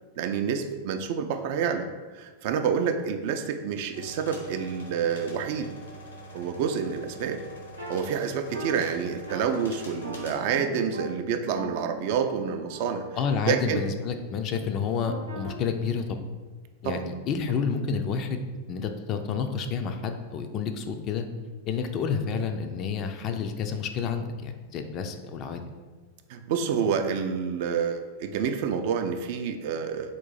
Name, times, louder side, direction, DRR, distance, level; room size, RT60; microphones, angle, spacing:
voice 1, 0.2-5.7 6.3-7.4 7.9-13.0 13.4-13.8 16.8-17.0 17.5-17.6 26.3-30.2, right 7 dB, 50° right, 6 dB, 0.3 m, -28 dB
sound 1, 3.9-10.3, right 1 dB, 75° left, 0.9 m, -44 dB
sound 2, 7.8-7.9 8.5-8.7 9.3-9.5 10.0-10.2 10.5-11.0 11.5-13.8 15.0-15.5, right 2 dB, 85° right, 0.7 m, -40 dB
voice 2, 13.2-16.2 16.8-18.4 18.7-21.3 21.7-25.6, left 6 dB, 35° left, 6 dB, 0.3 m, -29 dB
3.8 x 2.5 x 3.9 m, 1.4 s
figure-of-eight pair, 90°, 0 cm